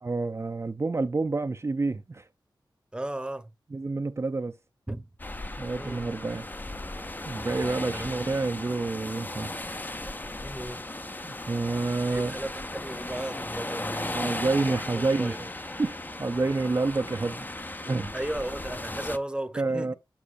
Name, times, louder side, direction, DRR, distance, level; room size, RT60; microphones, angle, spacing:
voice 1, 0.0-2.3 3.7-4.6 5.6-6.4 7.2-9.6 11.2-12.3 14.1-15.5 15.8-17.5 17.9-18.1 19.5-19.9, right 3 dB, 35° right, 0.5 m, -28 dB
voice 2, 2.9-3.5 4.9-5.1 5.7-6.1 7.9-8.1 10.4-10.8 12.1-15.4 18.1-19.9, right 1 dB, 10° right, 0.9 m, -35 dB
sound 1, 5.2-19.2, left 2 dB, 20° left, 0.7 m, -36 dB
8.6 x 4.9 x 2.5 m
cardioid pair, 60°, 8 cm